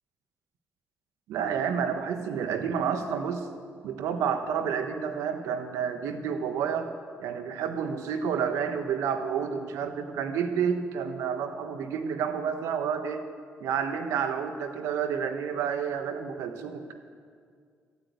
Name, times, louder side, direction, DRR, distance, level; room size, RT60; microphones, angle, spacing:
voice 1, 1.3-3.5 3.8-6.9 7.2-13.2 13.6-16.9, right 7 dB, 85° right, 8 dB, 1.3 m, -30 dB
15.0 x 8.8 x 9.4 m, 2.1 s
supercardioid pair, 65°, 5 cm